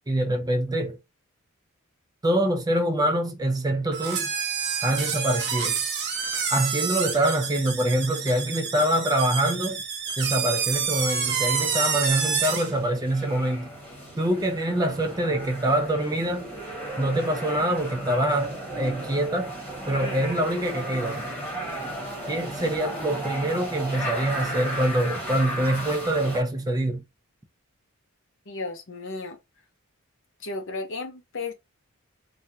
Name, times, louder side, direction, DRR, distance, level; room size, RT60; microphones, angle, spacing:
voice 1, 0.1-1.0 2.2-4.3 4.8-5.8 6.5-9.8 10.2-13.7 14.2-16.5 17.0-19.5 19.9-21.2 22.3-27.0, right 1 dB, 15° right, 0.5 m, -25 dB
sound 1, 3.9-12.7, right 6 dB, 50° right, 0.7 m, -28 dB
sound 2, 10.3-26.4, equal, 10° left, 1.2 m, -35 dB
voice 2, 28.5-29.4 30.4-31.5, left 3 dB, 60° left, 0.7 m, -34 dB
3.4 x 2.2 x 2.7 m
head